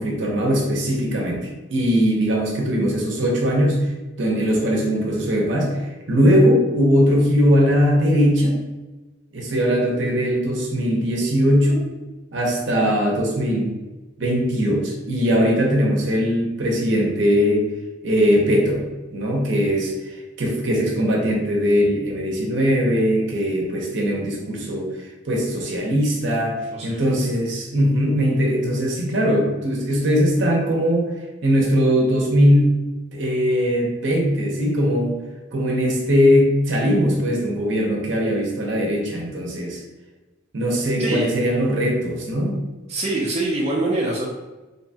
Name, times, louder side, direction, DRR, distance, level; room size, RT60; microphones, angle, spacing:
voice 1, 0.0-3.9 4.2-8.6 9.3-11.8 12.3-13.8 14.2-17.7 18.0-31.1 31.4-32.9 33.1-35.2 35.5-39.8 40.5-42.6, equal, 65° right, -1 dB, 0.7 m, -20 dB
voice 2, 26.7-27.3 41.0-41.3 42.9-44.3, right 2 dB, 30° right, -4 dB, 0.3 m, -24 dB
2.8 x 2.2 x 2.7 m, 1.2 s
head